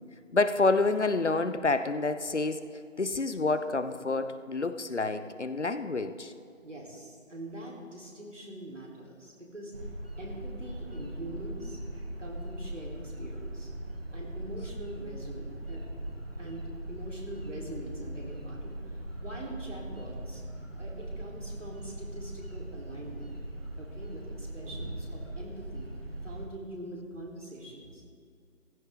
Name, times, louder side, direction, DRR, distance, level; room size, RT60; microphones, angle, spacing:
voice 1, 0.3-2.7 3.0-6.3, left 3 dB, 60° left, 11 dB, 0.8 m, -28 dB
voice 2, 6.6-9.7 10.2-11.8 12.2-13.7 14.1-15.9 16.4-20.4 20.7-23.3 23.8-25.9 26.2-28.0, right 1 dB, 65° right, -3 dB, 3.8 m, -43 dB
sound 1, 9.7-26.5, right 1 dB, 45° right, 1.5 m, -40 dB
15.5 x 13.5 x 3.7 m, 2.4 s
figure-of-eight pair, 180°, 39 cm